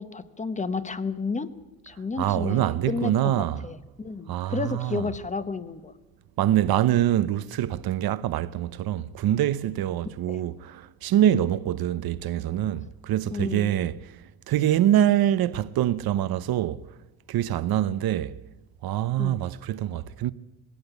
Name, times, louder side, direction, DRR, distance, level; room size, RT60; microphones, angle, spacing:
voice 1, 0.0-1.5 1.8-3.1 3.6-5.9 10.3-10.4 13.3-13.7 19.2-19.5, left 4 dB, 20° left, 1.0 m, -31 dB
voice 2, 2.2-3.6 4.3-5.0 6.4-13.9 14.5-16.8 17.3-18.4 18.8-20.3, right 12 dB, 70° right, 0.8 m, -24 dB
20.5 x 17.0 x 8.1 m
cardioid pair, 125°, 38 cm